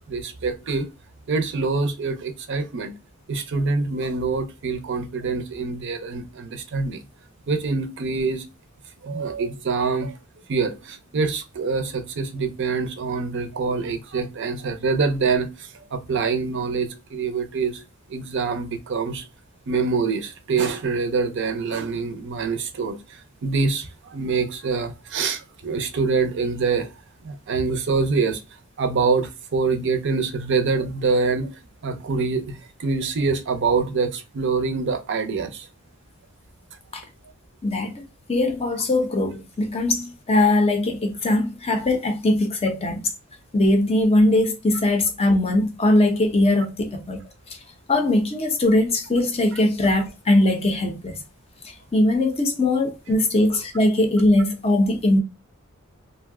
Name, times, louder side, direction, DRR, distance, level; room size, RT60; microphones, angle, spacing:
voice 1, 0.1-0.9 1.3-2.9 3.3-7.0 7.5-8.4 9.0-10.2 10.5-17.8 18.1-19.2 19.7-26.9 27.2-28.4 28.8-31.6 31.8-35.7, right 4 dB, 55° right, 0.5 m, -25 dB
voice 2, 37.6-38.0 38.3-43.1 43.5-47.2 47.9-51.2 51.9-55.2, left 1 dB, 25° left, 0.5 m, -20 dB
2.6 x 2.1 x 3.4 m
head